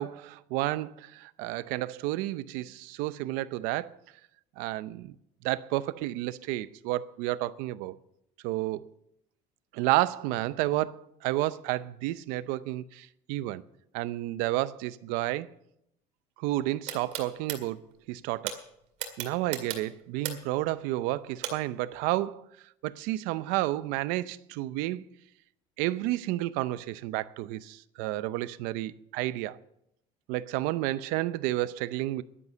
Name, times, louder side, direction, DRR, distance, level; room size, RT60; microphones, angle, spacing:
voice 1, 0.0-3.9 4.6-5.1 5.4-8.0 8.4-8.8 9.7-13.6 13.9-15.5 16.4-18.6 19.2-22.4 22.8-25.0 25.8-29.6 30.3-32.2, right 16 dB, 75° right, 0.6 m, -31 dB
sound 1, 16.9-17.6 18.5-18.6 19.0-20.6 21.4-21.5, right 9 dB, 55° right, 2.1 m, -34 dB
11.0 x 11.0 x 6.6 m
cardioid pair, 180°, 14 cm